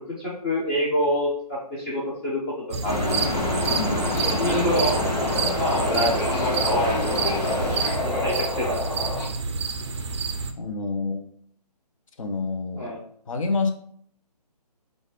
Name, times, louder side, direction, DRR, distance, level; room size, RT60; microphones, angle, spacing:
voice 1, 0.2-2.4 2.8-3.5 4.4-5.0 5.5-7.2 8.0-9.1 12.8-13.0, equal, 15° left, -6 dB, 0.6 m, -26 dB
sound 1, 2.7-10.5, right 4 dB, 45° right, 0.4 m, -29 dB
sound 2, 2.8-7.9, left 1 dB, 80° left, 1.5 m, -28 dB
Subway metro underground, 3.3-9.2, left 2 dB, 35° left, 1.3 m, -29 dB
voice 2, 3.7-4.2 10.6-11.2 12.2-12.9 13.3-13.7, left 3 dB, 55° left, 6 dB, 0.7 m, -28 dB
5.0 x 2.5 x 3.3 m, 0.63 s
figure-of-eight pair, 145°, 21 cm